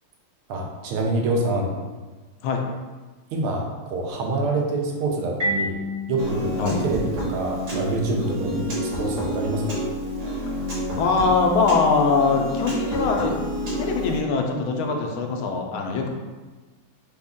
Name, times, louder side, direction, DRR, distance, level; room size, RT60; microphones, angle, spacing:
voice 1, 0.5-1.7 3.3-5.8 6.1-9.8, right 2 dB, 80° right, 0 dB, 1.5 m, -26 dB
Marimba xylophone, 5.4-8.0, left 1 dB, 30° right, 0.7 m, -31 dB
Piano, 6.2-14.2, equal, 50° right, 1.7 m, -29 dB
voice 2, 11.0-13.4 13.8-16.1, left 4 dB, 80° left, 2 dB, 1.3 m, -22 dB
5.1 x 2.4 x 3.5 m, 1.3 s
omnidirectional pair, 2.3 m